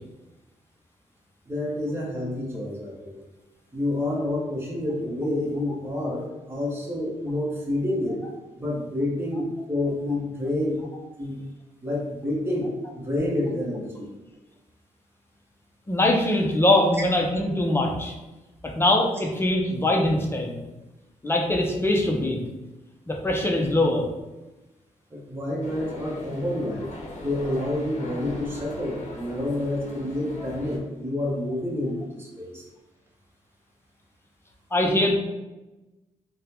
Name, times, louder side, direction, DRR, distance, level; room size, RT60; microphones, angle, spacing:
voice 1, 1.5-3.2 3.7-8.2 8.6-10.8 11.2-11.4 11.8-12.7 12.9-14.1 25.1-32.6, left 1 dB, 15° right, -3 dB, 1.0 m, -28 dB
voice 2, 15.9-18.1 18.6-20.6 21.2-22.4 23.1-24.1 34.7-35.1, left 1 dB, 15° left, 1 dB, 0.6 m, -22 dB
sound 1, 25.6-30.8, left 1 dB, 60° left, 0.7 m, -39 dB
3.6 x 2.2 x 2.9 m, 1.1 s
cardioid pair, 90°, 14 cm